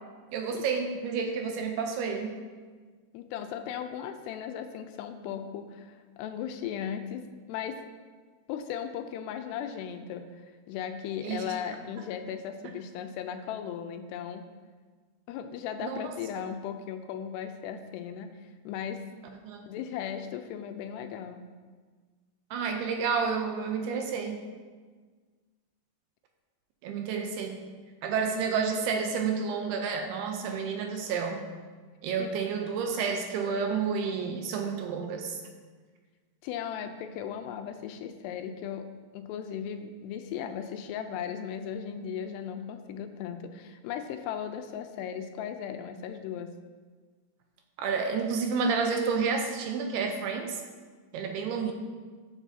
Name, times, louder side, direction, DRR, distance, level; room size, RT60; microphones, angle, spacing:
voice 1, 0.3-2.4 11.2-11.5 15.8-16.2 19.4-19.7 22.5-24.4 26.8-27.6 28.0-31.5 32.0-35.4 47.8-50.6 51.1-51.7, right 5 dB, 75° right, 4 dB, 2.6 m, -30 dB
voice 2, 3.1-7.8 8.5-14.5 15.3-19.1 19.7-21.4 32.2-32.3 36.4-46.5, left 8 dB, 85° left, 7 dB, 2.6 m, -37 dB
13.0 x 9.1 x 2.7 m, 1.5 s
omnidirectional pair, 5.0 m